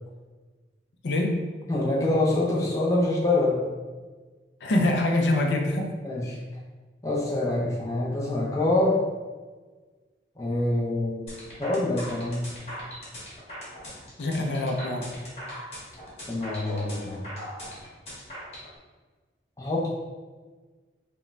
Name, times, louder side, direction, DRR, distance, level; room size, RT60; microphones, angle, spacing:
voice 1, 1.0-1.4 4.6-5.9 14.2-15.1, left 1 dB, 80° left, 2 dB, 0.5 m, -24 dB
voice 2, 1.7-3.7 6.0-6.4 7.0-9.1 10.4-11.3 11.6-12.5 16.3-17.2 19.6-19.9, left 2 dB, 15° left, -4 dB, 0.6 m, -25 dB
sound 1, 11.3-18.7, equal, 35° left, 1.3 m, -40 dB
4.8 x 2.2 x 3.2 m, 1.4 s
head